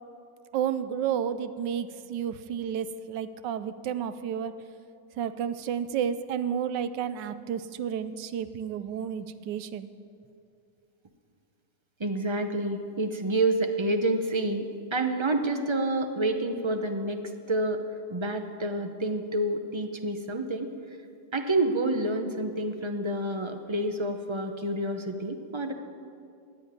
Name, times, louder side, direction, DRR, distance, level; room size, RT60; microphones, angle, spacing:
voice 1, 0.5-4.6 5.2-9.9, right 8 dB, 85° right, 12 dB, 1.3 m, -31 dB
voice 2, 12.0-17.2 17.5-17.8 18.1-20.7 21.3-25.7, right 2 dB, 40° right, 6 dB, 0.4 m, -28 dB
14.0 x 9.2 x 9.5 m, 2.4 s
omnidirectional pair, 1.9 m